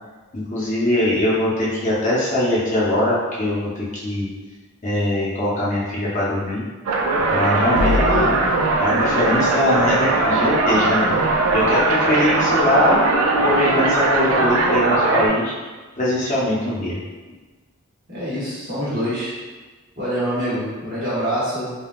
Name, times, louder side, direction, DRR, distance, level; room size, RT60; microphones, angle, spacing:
voice 1, 0.3-4.3 4.8-6.6 7.3-7.9 8.2-8.4 8.8-11.1 11.5-13.0 13.4-15.5 16.0-17.0, left 1 dB, 35° left, -8 dB, 0.7 m, -21 dB
sound 1, 6.9-15.3, right 2 dB, 85° right, 0.4 m, -19 dB
voice 2, 7.8-8.3 18.1-19.4 20.0-21.7, equal, 40° right, -12 dB, 1.3 m, -25 dB
3.4 x 2.3 x 2.4 m, 1.3 s
head